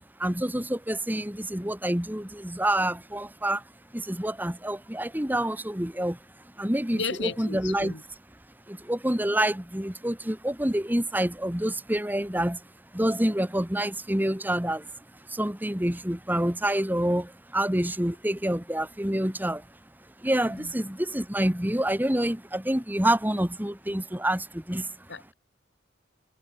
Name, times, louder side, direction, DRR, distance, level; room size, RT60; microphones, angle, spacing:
voice 1, 0.0-7.9 8.7-25.1, right 1 dB, 10° right, 1.8 m, -28 dB
voice 2, 6.9-8.0 20.5-20.7 25.1-25.3, left 4 dB, 65° left, 5.4 m, -34 dB
head